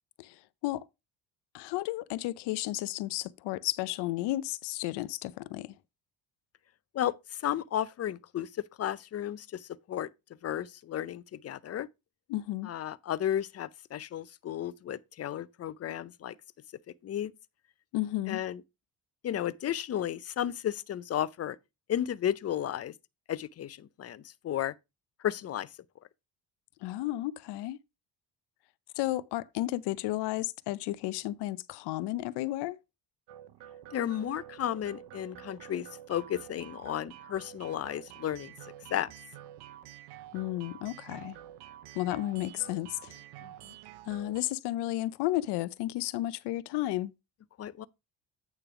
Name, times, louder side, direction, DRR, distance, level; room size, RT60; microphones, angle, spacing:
voice 1, 0.2-0.8 1.5-5.7 12.3-12.7 17.9-18.4 26.8-27.8 29.0-32.8 40.3-41.4 41.9-43.2 44.1-47.1, left 16 dB, 85° left, 0.6 m, -33 dB
voice 2, 7.4-8.5 8.8-10.1 10.4-11.9 12.6-16.3 17.0-17.3 18.3-18.6 19.2-21.6 21.9-22.9 23.3-24.7 25.2-25.7 33.9-38.5 38.9-39.1 43.4-43.7 47.6-47.9, left 11 dB, 40° left, 0.5 m, -33 dB
sound 1, 33.3-44.4, right 12 dB, 85° right, 0.8 m, -49 dB
9.0 x 3.3 x 5.8 m
cardioid pair, 115°, 39 cm